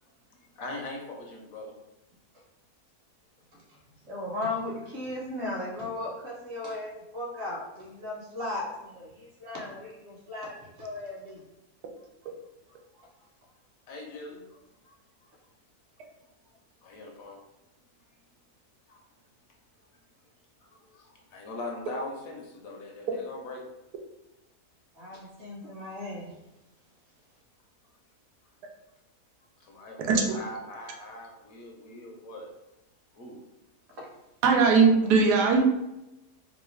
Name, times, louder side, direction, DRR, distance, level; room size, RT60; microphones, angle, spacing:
voice 1, 0.6-1.7 13.9-15.0 16.8-17.4 18.9-19.0 20.6-23.6 29.6-32.5 33.1-33.4, left 2 dB, 70° left, 0 dB, 1.0 m, -41 dB
voice 2, 4.0-11.4 13.0-13.1 24.9-26.3 33.9-34.1, left 2 dB, 50° right, -4 dB, 1.0 m, -36 dB
voice 3, 34.4-35.6, right 4 dB, 90° right, 2 dB, 1.1 m, -19 dB
3.1 x 2.3 x 3.1 m, 0.93 s
omnidirectional pair, 1.7 m